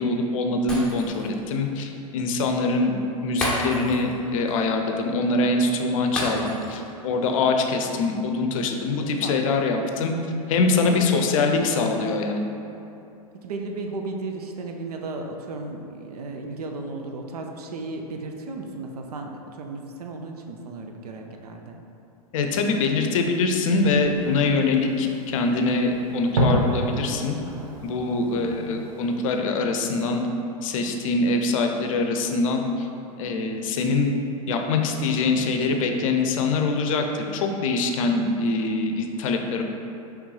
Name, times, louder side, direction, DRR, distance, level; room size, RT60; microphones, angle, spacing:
voice 1, 0.0-2.9 3.2-10.1 10.5-12.4 22.3-27.4 27.8-30.2 30.6-32.9 33.2-34.1 34.5-39.6, left 3 dB, 60° left, 4 dB, 0.5 m, -24 dB
Shatter, 0.7-1.4 1.7-1.9 3.4-4.2 4.5-4.6 6.2-6.9 7.2-7.4, left 1 dB, 5° left, 0.8 m, -30 dB
voice 2, 9.0-9.6 11.0-11.8 13.4-21.8 28.1-28.9, right 3 dB, 75° right, 3 dB, 0.5 m, -35 dB
Fireworks, 23.7-29.4, right 1 dB, 60° right, 1.0 m, -30 dB
5.1 x 3.2 x 3.2 m, 2.8 s
hypercardioid pair, 110°, 20 cm